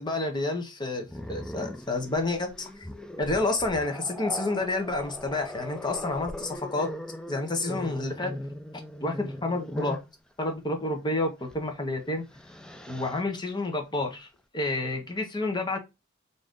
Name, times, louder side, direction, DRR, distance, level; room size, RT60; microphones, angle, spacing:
voice 1, 0.0-2.7 3.2-6.9 7.3-8.3 9.0-10.0 10.4-12.2 12.9-14.3 14.5-15.8, left 2 dB, 20° left, 0.8 m, -29 dB
Growling, 1.1-10.1 11.5-11.7 12.1-13.2, left 1 dB, 5° left, 0.3 m, -39 dB
3.8 x 2.7 x 3.5 m
head